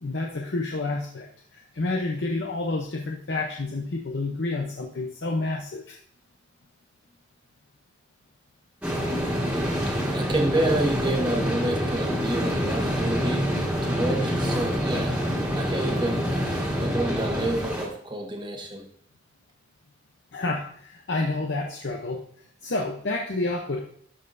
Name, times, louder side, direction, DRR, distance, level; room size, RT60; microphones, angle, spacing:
voice 1, 0.0-1.3 1.5-6.0 13.6-13.7 20.3-22.2 22.6-23.8, left 2 dB, 70° left, 1 dB, 0.8 m, -29 dB
sound 1, 8.8-17.9, equal, 5° right, 1.8 m, -26 dB
voice 2, 10.1-15.2 15.5-16.3 16.8-18.8, right 1 dB, 25° right, 3 dB, 1.1 m, -29 dB
12.5 x 5.5 x 2.7 m, 0.62 s
head